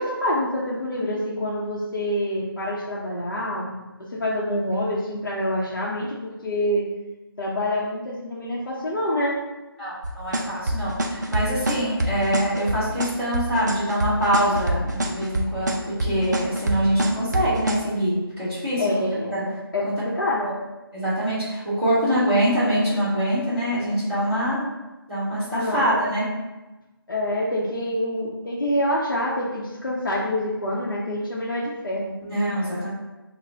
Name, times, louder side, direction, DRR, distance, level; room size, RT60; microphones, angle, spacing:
voice 1, 0.0-3.7 4.1-6.9 7.4-9.4 18.8-20.5 25.6-26.0 27.1-32.1, left 1 dB, 60° left, -6 dB, 0.8 m, -26 dB
voice 2, 9.8-18.8 19.3-19.5 20.4-20.5 20.9-24.7 25.1-26.3 32.2-32.9, equal, ahead, -14 dB, 1.4 m, -24 dB
sound 1, 10.0-17.8, right 1 dB, 45° right, 0.4 m, -25 dB
6.1 x 2.2 x 2.7 m, 1.1 s
figure-of-eight pair, 165°, 13 cm